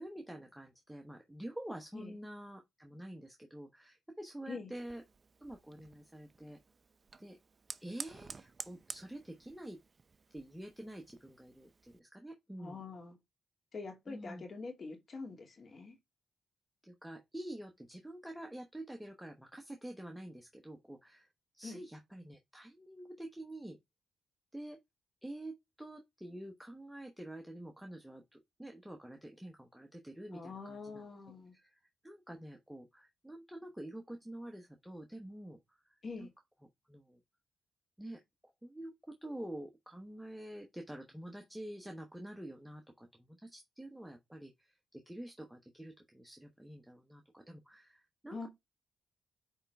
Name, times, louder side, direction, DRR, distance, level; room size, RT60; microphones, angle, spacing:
voice 1, 0.0-5.0 5.4-6.6 7.2-7.4 7.8-9.8 10.3-12.8 14.1-14.4 16.8-21.3 21.5-23.8 24.5-24.8 25.2-31.0 31.5-35.6 36.2-36.3 36.9-37.2 38.0-48.5, right 1 dB, 5° right, 1.1 m, -48 dB
Fire, 4.7-12.0, right 4 dB, 35° right, 0.6 m, -51 dB
voice 2, 12.6-13.2 13.7-16.0 21.6-21.8 30.3-31.5 36.0-36.3 48.3-48.5, left 4 dB, 45° left, 2.2 m, -45 dB
8.8 x 3.7 x 3.4 m
cardioid pair, 100°, 0 cm